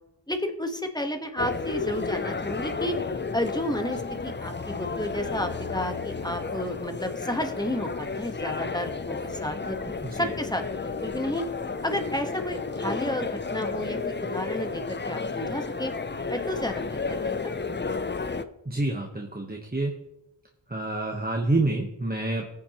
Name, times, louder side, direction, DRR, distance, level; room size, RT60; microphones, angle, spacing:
voice 1, 0.3-3.0 3.3-9.8 10.1-11.4 11.8-15.9 16.3-17.5, left 1 dB, 10° left, 6 dB, 1.3 m, -31 dB
sound 1, 1.4-18.4, left 4 dB, 25° left, 0.5 m, -32 dB
voice 2, 18.7-19.9 20.7-22.5, right 2 dB, 20° right, 1 dB, 1.1 m, -28 dB
20.0 x 7.3 x 3.0 m, 0.91 s
wide cardioid pair, 50°, 44 cm